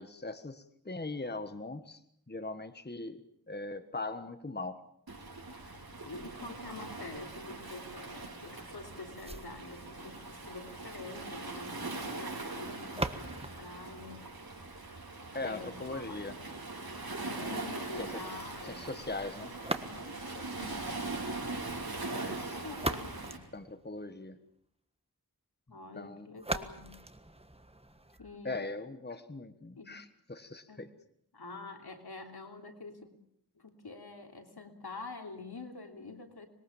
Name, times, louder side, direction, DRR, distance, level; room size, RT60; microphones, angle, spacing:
voice 1, 0.0-2.0 2.3-4.8 15.3-16.4 17.3-17.6 18.0-18.2 18.6-19.5 19.8-20.9 22.1-22.6 23.5-24.4 25.7-26.3 28.4-30.9, left 2 dB, 25° left, 10 dB, 1.4 m, -41 dB
Waves surf, 5.1-23.4, right 2 dB, 70° right, 4.9 m, -41 dB
voice 2, 6.0-14.3 15.4-16.4 17.2-18.8 20.4-21.2 22.3-23.4 25.7-26.9 28.2-28.6 29.8-30.0 30.7-30.8 31.3-33.1 33.5-36.5, left 3 dB, 80° left, 3 dB, 3.3 m, -47 dB
sound 1, 9.2-15.1 19.5-20.4 22.4-24.4 26.4-28.4, right 1 dB, 15° right, 1.5 m, -41 dB
25.5 x 21.5 x 7.2 m, 0.70 s
wide cardioid pair, 65°, 38 cm